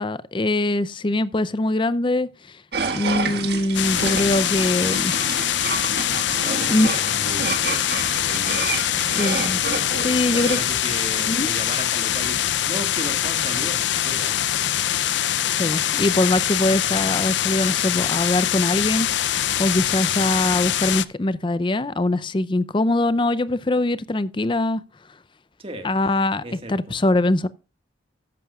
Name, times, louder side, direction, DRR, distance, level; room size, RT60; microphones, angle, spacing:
voice 1, 0.0-2.3 2.9-5.1 6.7-6.9 8.3-8.4 9.2-9.6 10.0-10.6 11.3-11.5 15.5-19.3 19.6-24.8 25.8-26.4 26.7-27.5, left 2 dB, 25° left, 0.5 m, -22 dB
sound 1, 2.7-10.7, right 4 dB, 60° right, 1.6 m, -30 dB
voice 2, 2.8-3.1 6.2-9.3 10.3-14.3 19.9-20.2 25.6-27.0, right 1 dB, 30° right, 1.6 m, -36 dB
sound 2, 3.7-21.0, left 11 dB, 75° left, 0.5 m, -23 dB
13.5 x 10.5 x 2.4 m
head